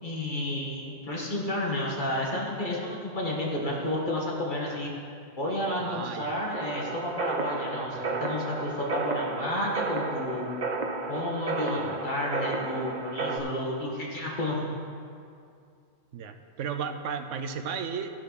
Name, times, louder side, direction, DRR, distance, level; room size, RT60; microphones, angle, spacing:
voice 1, 0.0-4.9 5.4-10.5 11.1-14.7, left 1 dB, 40° left, -3 dB, 2.0 m, -31 dB
voice 2, 5.8-6.3 7.9-8.1 11.7-12.0 16.1-18.1, right 6 dB, 80° right, 8 dB, 1.0 m, -34 dB
sound 1, 6.5-13.4, right 3 dB, 45° right, 0.7 m, -33 dB
12.5 x 10.5 x 4.1 m, 2.3 s
omnidirectional pair, 1.2 m